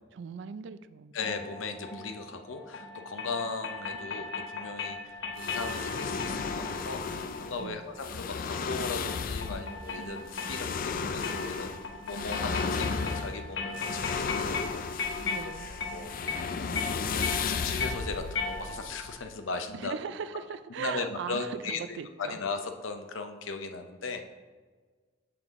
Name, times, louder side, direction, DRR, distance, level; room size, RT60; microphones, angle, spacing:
voice 1, 0.0-1.1 7.6-7.8 15.2-15.7 19.7-22.4, right 6 dB, 65° right, 13 dB, 0.3 m, -39 dB
voice 2, 1.1-16.1 16.4-16.6 16.9-19.9 20.8-24.2, left 4 dB, 85° left, 6 dB, 0.6 m, -38 dB
sound 1, 1.2-19.0, left 4 dB, 65° left, 1.0 m, -38 dB
sound 2, 5.4-19.3, left 5 dB, 45° left, 0.4 m, -34 dB
6.8 x 5.9 x 3.6 m, 1.5 s
head